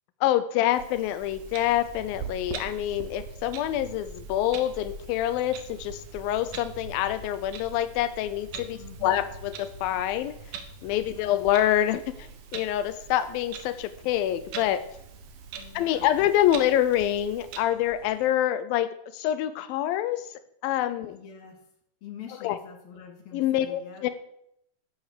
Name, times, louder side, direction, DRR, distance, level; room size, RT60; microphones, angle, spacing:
voice 1, 0.2-10.3 10.8-12.0 12.5-14.9 15.7-20.3 20.6-21.2 22.4-22.6 23.3-24.1, left 12 dB, 85° left, 12 dB, 2.1 m, -26 dB
Clock, 0.7-17.6, right 8 dB, 65° right, 2.1 m, -43 dB
sound 1, 1.2-18.3, equal, 15° left, 2.8 m, -48 dB
voice 2, 8.7-9.2 11.1-11.4 15.6-16.1 21.0-21.6 22.0-24.0, left 8 dB, 65° left, 1 dB, 3.4 m, -45 dB
11.5 x 8.7 x 6.8 m, 0.75 s
omnidirectional pair, 4.9 m